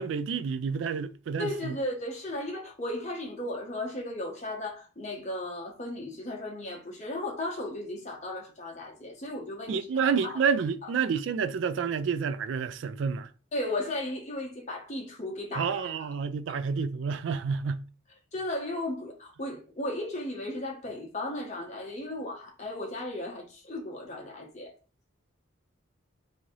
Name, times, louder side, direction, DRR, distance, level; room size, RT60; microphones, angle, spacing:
voice 1, 0.0-1.8 9.7-13.3 15.5-17.8, right 6 dB, 70° right, 0.3 m, -29 dB
voice 2, 1.4-10.4 13.5-16.0 18.3-24.7, left 1 dB, 35° left, 1.0 m, -35 dB
3.0 x 2.7 x 3.7 m
head